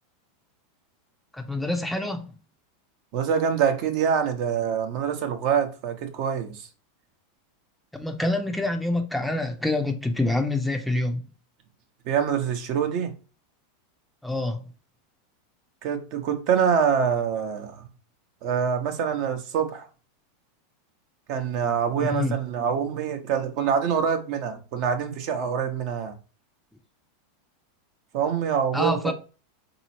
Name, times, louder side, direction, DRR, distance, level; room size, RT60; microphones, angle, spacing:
voice 1, 1.3-2.3 7.9-11.2 14.2-14.6 22.0-22.3 28.7-29.1, left 2 dB, 5° left, 0.6 m, -26 dB
voice 2, 3.1-6.7 12.0-13.1 15.8-17.9 18.4-19.9 21.3-26.1 28.1-29.1, right 7 dB, 55° right, 0.9 m, -25 dB
4.1 x 2.9 x 2.8 m
hypercardioid pair, 115°, 0 cm